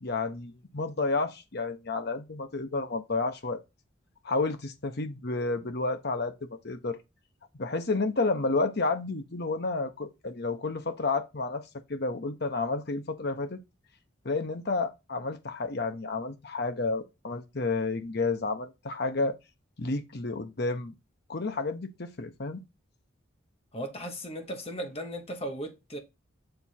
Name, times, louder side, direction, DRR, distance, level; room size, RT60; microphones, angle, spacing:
voice 1, 0.0-3.6 4.2-7.0 7.5-11.6 11.9-13.6 14.2-19.3 19.8-20.9 21.3-22.6, left 3 dB, 55° left, 0.9 m, -31 dB
voice 2, 23.7-26.0, equal, 30° left, 1.0 m, -36 dB
6.7 x 3.5 x 4.3 m
head